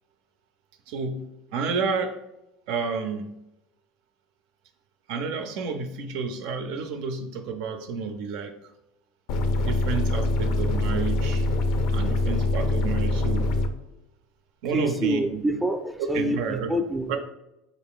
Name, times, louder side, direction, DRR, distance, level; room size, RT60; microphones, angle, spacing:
voice 1, 0.9-2.2 2.7-3.3 5.1-8.5 9.6-11.5 11.9-13.5 14.6-15.4 16.1-16.7 17.1-17.2, right 5 dB, 70° right, 7 dB, 0.4 m, -30 dB
sound 1, 9.3-13.7, left 2 dB, 65° left, 0.4 m, -24 dB
voice 2, 14.6-17.2, right 1 dB, 5° right, 4 dB, 0.4 m, -27 dB
3.9 x 2.5 x 3.6 m, 0.88 s
supercardioid pair, 100°, 0 cm